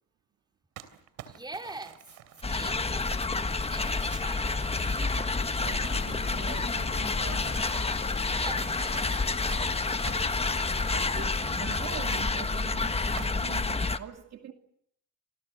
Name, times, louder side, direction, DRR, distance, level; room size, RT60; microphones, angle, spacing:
Crumpling crinkling, 0.8-6.8 7.2-8.1 8.9-12.5 13.2-13.6, right 12 dB, 90° right, 3.0 m, -48 dB
voice 1, 1.3-2.0 2.5-5.0 8.2-9.6, right 2 dB, 15° right, 3.6 m, -44 dB
sound 1, 2.4-14.0, left 3 dB, 20° left, 1.4 m, -29 dB
sound 2, 5.1-11.9 12.7-13.0, left 6 dB, 55° left, 4.8 m, -45 dB
voice 2, 5.6-7.7 10.6-14.5, right 8 dB, 60° right, 2.4 m, -43 dB
29.0 x 26.5 x 6.8 m
cardioid pair, 90°, 30 cm